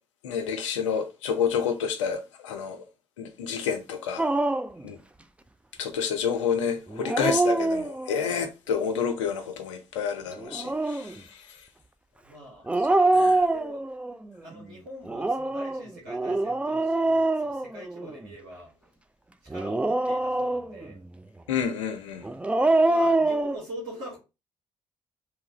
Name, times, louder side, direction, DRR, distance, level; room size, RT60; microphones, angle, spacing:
voice 1, 0.2-2.8 3.2-4.2 4.8-5.0 5.8-11.4 13.1-13.4 21.5-22.3, left 7 dB, 80° left, 0.4 m, -29 dB
Dog, 4.2-4.8 6.9-8.3 10.4-11.1 12.7-14.1 15.1-18.2 19.5-20.9 22.2-23.6, right 2 dB, 10° right, 0.3 m, -25 dB
voice 2, 12.2-12.7 13.4-13.9 14.4-18.7 19.5-21.0 22.9-24.2, equal, 75° right, 1.1 m, -43 dB
3.0 x 2.4 x 2.9 m
figure-of-eight pair, 40°, 15 cm